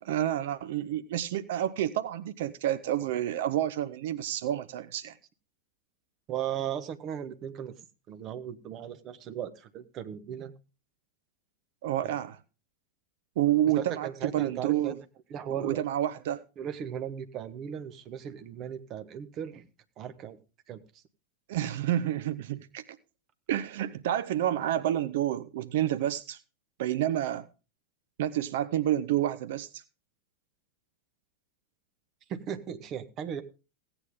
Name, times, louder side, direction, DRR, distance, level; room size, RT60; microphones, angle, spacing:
voice 1, 0.0-5.1 11.8-12.4 13.4-15.0 15.6-16.4 21.5-22.8 23.5-26.4 26.8-27.5 28.2-29.8, right 12 dB, 55° right, 0.7 m, -29 dB
voice 2, 6.3-7.7 8.1-10.5 12.0-12.2 13.7-14.9 15.3-15.8 16.6-19.7 20.0-20.4 20.7-20.8 32.3-33.4, right 9 dB, 35° right, 1.1 m, -37 dB
16.5 x 8.9 x 3.7 m
figure-of-eight pair, 90°, 0 cm